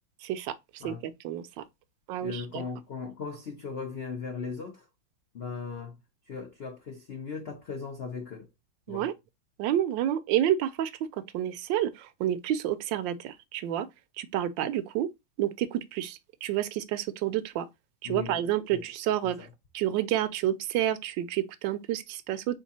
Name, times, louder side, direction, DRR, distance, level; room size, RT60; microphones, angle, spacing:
voice 1, 0.2-0.5 0.8-1.6 2.1-2.6 8.9-9.1 9.6-10.9 11.2-13.9 14.2-15.1 15.4-17.7 18.0-19.5 19.7-22.6, right 12 dB, 75° right, 1.2 m, -29 dB
voice 2, 2.2-4.9 5.3-6.0 6.3-8.5 8.9-9.1 18.0-18.4 18.7-18.8 19.4-19.5, left 5 dB, 85° left, 0.5 m, -38 dB
3.6 x 3.3 x 4.1 m
omnidirectional pair, 2.1 m